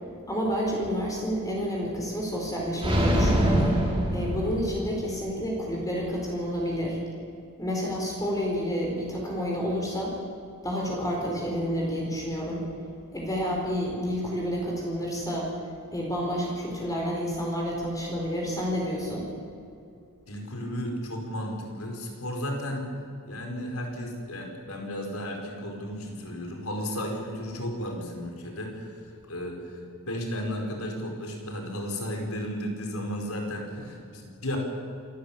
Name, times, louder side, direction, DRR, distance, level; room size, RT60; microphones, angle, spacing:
voice 1, 0.3-3.8 4.1-7.0 7.6-10.2 10.6-12.6 13.1-15.5 15.9-19.2, equal, 15° left, -2 dB, 4.5 m, -29 dB
sound 1, 2.8-5.0, right 1 dB, 25° right, 4.7 m, -24 dB
voice 2, 20.3-22.9 23.2-34.6, equal, 75° left, 2 dB, 4.8 m, -34 dB
27.5 x 13.0 x 8.8 m, 2.5 s
head